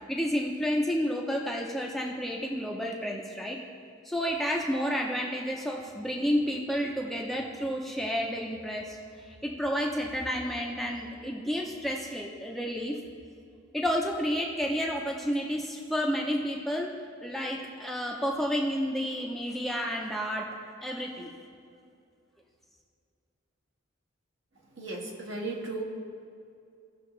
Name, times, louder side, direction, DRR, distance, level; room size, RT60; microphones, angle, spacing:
voice 1, 0.1-3.6 4.0-9.0 9.4-13.0 13.7-16.9 17.2-20.5 20.8-21.3, equal, ahead, -2 dB, 0.7 m, -30 dB
voice 2, 24.8-25.8, right 2 dB, 65° right, -3 dB, 1.8 m, -35 dB
18.0 x 6.1 x 3.3 m, 2.5 s
head